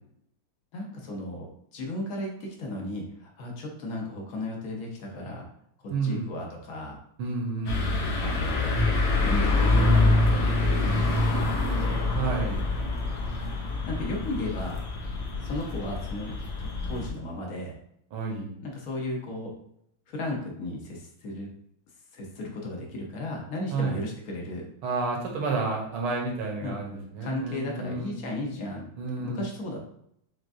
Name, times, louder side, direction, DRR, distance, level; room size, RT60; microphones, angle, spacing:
voice 1, 0.7-5.4 5.8-7.0 8.2-8.8 9.2-12.1 13.9-14.8 15.4-17.8 18.6-19.5 20.1-21.5 22.1-24.7 26.6-26.8 27.2-28.9 29.2-29.8, left 1 dB, 70° left, 0 dB, 0.8 m, -35 dB
voice 2, 5.9-6.3 7.2-8.0 12.1-12.6 18.1-18.5 23.7-24.0 24.8-28.1 29.0-29.4, right 4 dB, 70° right, 0 dB, 1.7 m, -30 dB
sound 1, 7.7-17.1, left 2 dB, 90° left, 1.8 m, -25 dB
6.1 x 2.4 x 2.6 m, 0.73 s
omnidirectional pair, 2.4 m